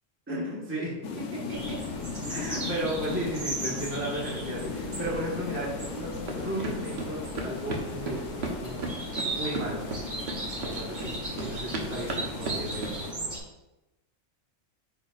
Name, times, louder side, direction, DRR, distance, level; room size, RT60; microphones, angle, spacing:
voice 1, 0.3-1.8 2.3-8.8 9.3-9.8 10.6-11.1 11.4-12.9, right 1 dB, 10° right, -6 dB, 1.4 m, -34 dB
sound 1, 1.0-13.1, left 5 dB, 80° left, 1.1 m, -38 dB
sound 2, 1.5-13.4, right 1 dB, 40° right, 1.4 m, -37 dB
sound 3, 6.3-12.9, right 3 dB, 60° right, 1.2 m, -36 dB
8.5 x 5.4 x 2.4 m, 0.99 s
omnidirectional pair, 1.3 m